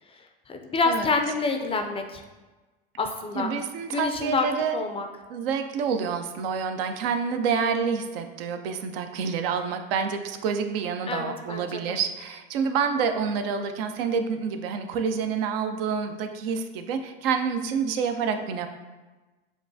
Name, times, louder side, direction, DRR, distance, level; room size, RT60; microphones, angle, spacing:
voice 1, 0.5-2.2 3.0-3.5 3.9-4.5 4.7-5.1 11.1-12.0, left 4 dB, 20° left, 5 dB, 0.4 m, -27 dB
voice 2, 3.3-4.8 5.3-18.7, right 6 dB, 75° right, 7 dB, 0.5 m, -28 dB
6.9 x 2.4 x 2.6 m, 1.2 s
hypercardioid pair, 95°, 30 cm